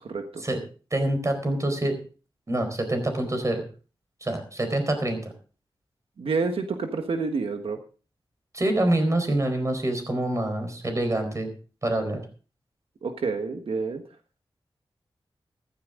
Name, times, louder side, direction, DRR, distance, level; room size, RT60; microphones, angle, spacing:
voice 1, 0.1-0.4 6.2-7.8 13.0-14.0, right 4 dB, 90° right, 6 dB, 1.4 m, -28 dB
voice 2, 0.9-1.9 2.5-3.6 4.2-5.3 8.5-11.5 11.8-12.2, right 1 dB, 35° right, 6 dB, 4.3 m, -26 dB
14.5 x 13.0 x 3.8 m, 0.37 s
wide cardioid pair, 85°, 9 cm